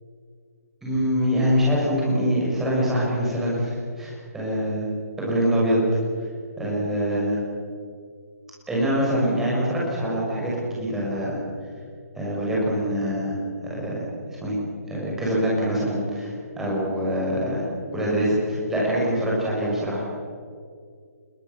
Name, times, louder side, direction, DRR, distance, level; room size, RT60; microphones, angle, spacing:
voice 1, 0.8-4.9 5.2-5.8 6.6-7.4 8.7-11.4 12.1-13.4 13.7-14.1 14.4-14.6 14.9-17.6 17.9-20.0, equal, 5° right, -6 dB, 6.2 m, -24 dB
26.5 x 22.0 x 7.1 m, 2.2 s
hypercardioid pair, 170°, 8 cm